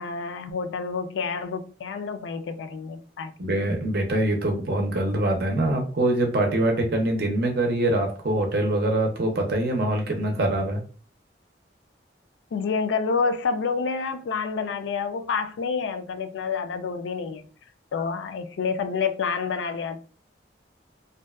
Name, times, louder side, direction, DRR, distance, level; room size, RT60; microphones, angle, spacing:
voice 1, 0.0-3.5 12.5-17.5 17.9-20.0, left 5 dB, 80° left, 0.3 m, -28 dB
voice 2, 3.4-10.8, right 1 dB, 55° right, 0.6 m, -24 dB
2.6 x 2.2 x 2.2 m
head